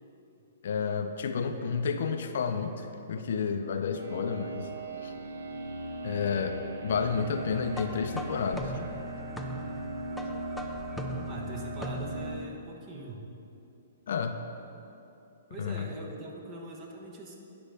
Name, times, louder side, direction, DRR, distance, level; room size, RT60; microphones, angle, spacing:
voice 1, 0.6-4.8 5.0-5.1 6.0-6.6 6.8-8.8 14.1-14.3 15.6-15.9, left 6 dB, 65° left, 7 dB, 0.5 m, -31 dB
voice 2, 1.5-1.9 11.2-13.3 15.5-17.3, right 2 dB, 30° right, 0 dB, 1.1 m, -43 dB
sound 1, 3.9-12.3, right 1 dB, 80° right, 0.7 m, -38 dB
sound 2, 7.7-12.4, equal, ahead, 0.4 m, -40 dB
9.8 x 5.1 x 3.4 m, 2.9 s
hypercardioid pair, 135°, 0 cm